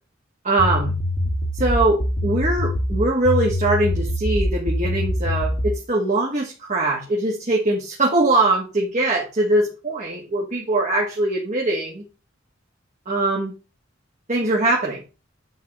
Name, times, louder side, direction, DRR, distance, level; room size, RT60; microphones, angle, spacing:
voice 1, 0.4-1.0 1.6-12.0 13.1-13.5 14.3-15.0, right 2 dB, 40° right, -2 dB, 1.8 m, -22 dB
sound 1, 0.6-5.8, left 1 dB, 60° left, 2.2 m, -24 dB
9.5 x 4.1 x 5.3 m, 0.32 s
head